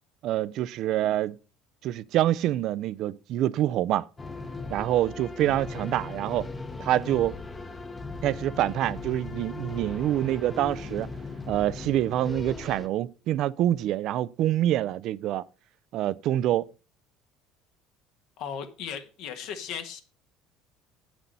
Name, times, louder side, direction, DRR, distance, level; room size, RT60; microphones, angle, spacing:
voice 1, 0.2-1.4 1.8-4.1 4.7-6.5 6.8-7.4 8.2-11.1 11.5-15.4 15.9-16.7, right 13 dB, 60° right, 0.4 m, -26 dB
sound 1, 4.2-12.9, left 3 dB, 20° left, 0.8 m, -38 dB
voice 2, 18.4-20.0, left 7 dB, 70° left, 1.4 m, -36 dB
8.9 x 6.1 x 5.3 m
supercardioid pair, 105°, 0 cm